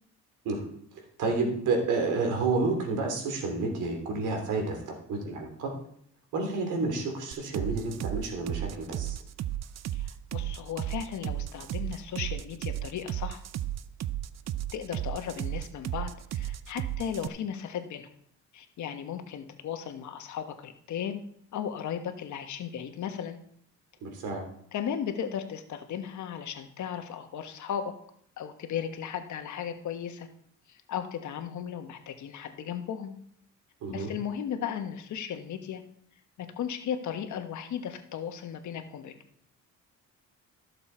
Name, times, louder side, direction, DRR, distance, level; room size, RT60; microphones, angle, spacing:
voice 1, 1.2-4.8 5.1-5.7 6.3-9.2 24.0-24.4 33.8-34.1, right 3 dB, 90° right, 2 dB, 2.9 m, -30 dB
sound 1, 7.3-17.3, right 12 dB, 60° right, 0.6 m, -34 dB
voice 2, 9.9-13.4 14.7-18.1 18.5-21.2 21.5-23.4 24.7-27.9 28.4-30.3 30.7-33.1 33.9-35.8 36.4-39.1, left 8 dB, 70° left, 6 dB, 1.3 m, -36 dB
14.0 x 6.8 x 4.4 m, 0.67 s
cardioid pair, 90°, 30 cm